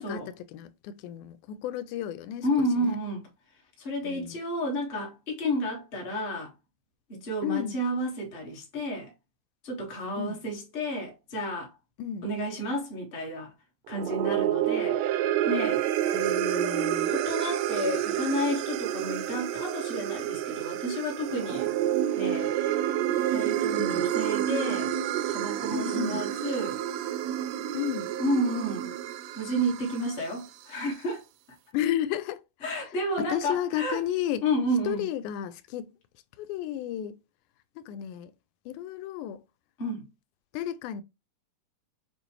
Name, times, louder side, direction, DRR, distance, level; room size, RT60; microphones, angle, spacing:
voice 1, 0.0-3.0 4.0-4.4 7.4-7.8 10.2-10.4 12.0-12.3 16.1-17.1 23.8-24.1 25.7-26.2 27.7-28.2 31.7-32.4 32.7-32.9 33.2-34.5 34.9-35.9 36.4-37.2 37.8-38.3 38.7-39.4 40.5-41.0, left 11 dB, 90° left, 2.0 m, -33 dB
voice 2, 2.4-3.2 3.8-6.5 7.1-9.1 9.6-11.7 12.2-13.5 13.9-15.0 15.5-15.8 17.1-21.7 22.2-22.5 23.3-25.0 25.3-26.8 28.2-28.9 29.3-31.2 32.6-34.0 34.4-35.0 39.8-40.1, equal, 30° left, 1.0 m, -31 dB
sound 1, 13.9-30.3, right 11 dB, 80° right, 1.6 m, -29 dB
6.7 x 2.5 x 3.0 m
omnidirectional pair, 3.5 m